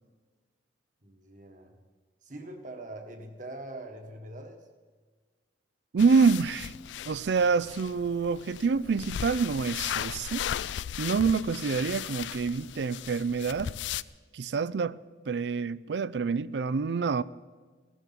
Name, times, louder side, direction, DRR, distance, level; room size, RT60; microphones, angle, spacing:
voice 1, 1.0-1.8 2.2-4.7, right 1 dB, 45° right, 1.7 m, -43 dB
voice 2, 5.9-6.7 7.1-10.5 11.0-13.7 14.3-15.0 15.3-17.2, right 5 dB, 70° right, 0.4 m, -27 dB
sound 1, 6.0-14.0, left 10 dB, 90° left, 0.4 m, -37 dB
17.5 x 12.5 x 6.0 m
head